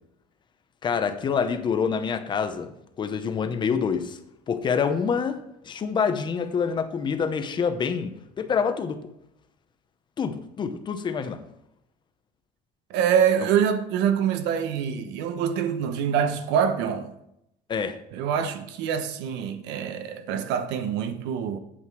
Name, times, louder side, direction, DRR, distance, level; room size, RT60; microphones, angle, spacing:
voice 1, 0.8-2.7 3.0-4.2 4.5-5.4 5.7-9.0 10.2-11.4 13.4-13.5 17.7-18.0, left 6 dB, 25° left, 0.8 m, -26 dB
voice 2, 12.9-17.1 18.1-21.6, right 8 dB, 80° right, 1.1 m, -25 dB
8.6 x 7.8 x 4.6 m
cardioid pair, 160°, 18 cm